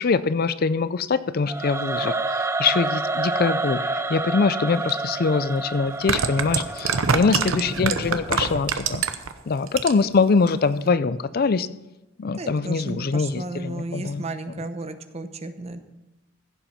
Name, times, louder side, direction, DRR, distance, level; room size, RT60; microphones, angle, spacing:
voice 1, 0.0-2.2 2.6-9.0 9.5-11.7 12.2-14.2, left 4 dB, 45° left, 15 dB, 0.4 m, -23 dB
Singing / Musical instrument, 1.5-8.6, right 2 dB, 15° right, 0.5 m, -29 dB
sound 1, 4.9-5.0 5.9-9.3 9.7-10.2 10.5-10.6, right 5 dB, 85° right, 0.9 m, -24 dB
voice 2, 7.0-7.8 12.3-15.8, right 2 dB, 30° right, 8 dB, 0.9 m, -34 dB
15.5 x 7.4 x 5.6 m, 0.96 s
head